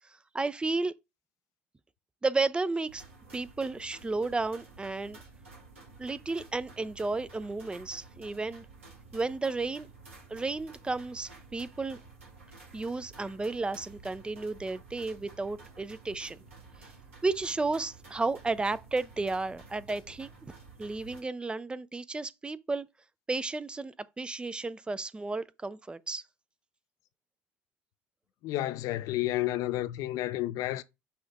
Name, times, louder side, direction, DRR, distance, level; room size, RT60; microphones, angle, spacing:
voice 1, 0.3-0.9 2.2-3.0 3.3-5.2 6.0-8.7 9.1-9.9 10.3-12.0 12.7-16.4 16.8-16.9 17.2-20.5 20.8-22.9 23.3-26.2, right 3 dB, 15° right, 0.4 m, -33 dB
sound 1, 2.9-21.2, right 3 dB, 85° right, 1.5 m, -52 dB
voice 2, 28.4-30.8, left 15 dB, 55° left, 0.4 m, -31 dB
5.6 x 2.5 x 3.4 m
hypercardioid pair, 65°, 7 cm